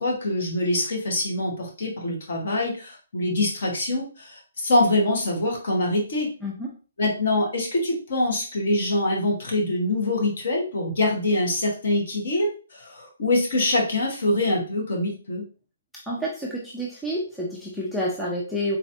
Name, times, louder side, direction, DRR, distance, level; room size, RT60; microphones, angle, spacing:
voice 1, 0.0-6.3 7.0-15.4, left 2 dB, 45° left, -1 dB, 1.5 m, -24 dB
voice 2, 16.1-18.8, equal, ahead, -5 dB, 0.4 m, -29 dB
4.0 x 3.1 x 2.8 m, 0.37 s
hypercardioid pair, 175°, 0 cm